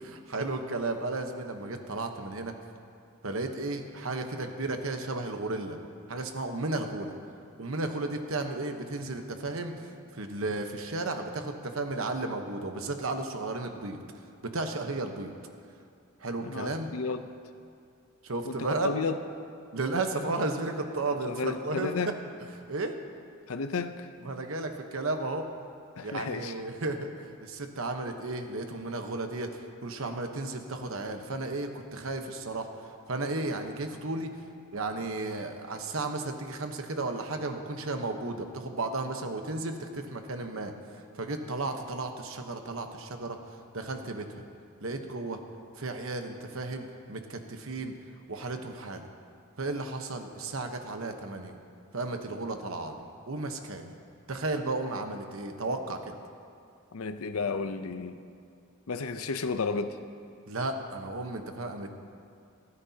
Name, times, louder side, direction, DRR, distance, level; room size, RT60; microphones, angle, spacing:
voice 1, 0.1-2.5 3.2-5.8 6.1-7.1 7.6-9.8 10.1-14.0 14.4-15.3 16.2-16.9 18.2-18.9 19.7-21.9 22.6-22.9 24.2-25.5 26.0-27.1 27.4-29.5 29.8-32.7 33.1-34.3 34.7-40.7 41.1-43.4 43.7-44.4 44.8-45.4 45.8-47.9 48.3-49.1 49.6-51.6 51.9-53.0 53.3-53.9 54.3-56.1 60.5-61.9, right 2 dB, 70° right, 5 dB, 1.1 m, -34 dB
voice 2, 16.4-17.3 18.4-19.2 21.3-22.2 23.5-24.1 26.0-26.6 56.9-58.2 58.9-60.0, left 4 dB, 80° left, 10 dB, 0.7 m, -32 dB
28.5 x 9.7 x 2.8 m, 2.4 s
head